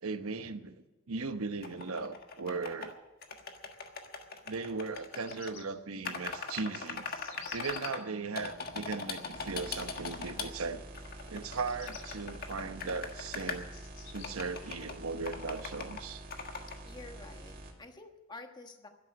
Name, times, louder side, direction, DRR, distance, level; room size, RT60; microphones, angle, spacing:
voice 1, 0.0-2.9 4.5-7.1 7.5-10.8 11.3-13.7 14.1-16.2, right 4 dB, 85° right, 10 dB, 0.9 m, -38 dB
sound 1, 1.6-2.9 3.2-5.5 6.1-8.0 8.4-10.5 10.9-13.6 14.2-14.9 15.3-16.0 16.3-16.8, left 5 dB, 45° left, 1.5 m, -41 dB
Bird vocalization bird call bird song, 4.9-5.6 6.4-7.9 11.4-12.2 12.8-14.3, left 7 dB, 70° left, 3.5 m, -50 dB
sound 2, 9.3-17.7, right 1 dB, 40° right, 2.8 m, -47 dB
voice 2, 16.8-18.9, left 3 dB, 20° left, 5 dB, 1.3 m, -49 dB
12.5 x 11.0 x 8.5 m, 1.1 s
head